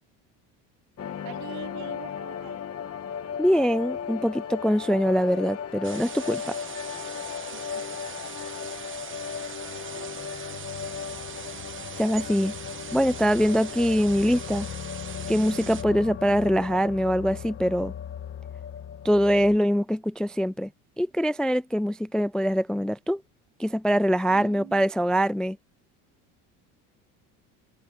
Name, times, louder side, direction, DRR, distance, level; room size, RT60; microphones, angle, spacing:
sound 1, 1.0-19.6, left 8 dB, 40° left, 2.9 m, -36 dB
voice 1, 1.2-2.6 7.5-7.8 9.7-10.1 24.3-24.8, right 23 dB, 75° right, 4.9 m, -44 dB
voice 2, 3.4-6.5 12.0-12.5 12.9-14.7 15.3-17.9 19.0-20.7 21.0-23.2 23.6-25.6, equal, ahead, 0.3 m, -23 dB
sound 2, 5.8-15.8, right 8 dB, 35° right, 1.4 m, -41 dB
open air
supercardioid pair, 100°, 36 cm